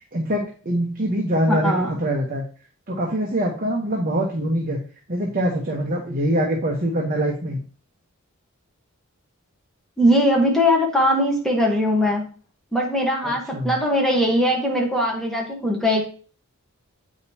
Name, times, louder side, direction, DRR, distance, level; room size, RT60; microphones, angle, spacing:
voice 1, 0.1-2.4 2.9-4.8 5.1-7.6 13.2-13.8, right 1 dB, 40° right, 0 dB, 1.0 m, -24 dB
voice 2, 1.5-1.9 10.0-12.2 12.7-16.0, equal, ahead, -2 dB, 1.1 m, -20 dB
8.1 x 5.1 x 2.8 m, 0.40 s
head